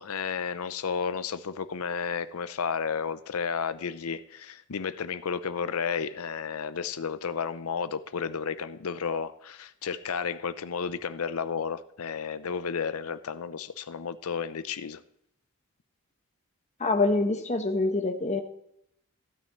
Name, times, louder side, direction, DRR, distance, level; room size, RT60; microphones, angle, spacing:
voice 1, 0.0-15.0, left 6 dB, 75° left, 13 dB, 0.6 m, -32 dB
voice 2, 16.8-18.4, left 3 dB, 30° left, 5 dB, 1.1 m, -25 dB
15.0 x 9.2 x 3.1 m, 0.74 s
head